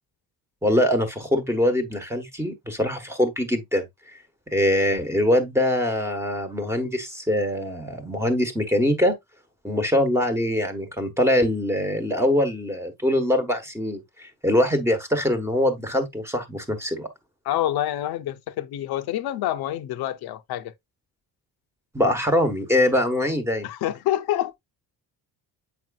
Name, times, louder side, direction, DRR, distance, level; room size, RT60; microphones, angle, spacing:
voice 1, 0.6-3.9 4.5-9.1 9.6-17.1 21.9-23.7, left 1 dB, 5° right, 1.2 m, -23 dB
voice 2, 17.4-20.7 23.6-24.6, left 12 dB, 80° left, 0.8 m, -27 dB
7.9 x 5.1 x 2.4 m
cardioid pair, 150°, 37 cm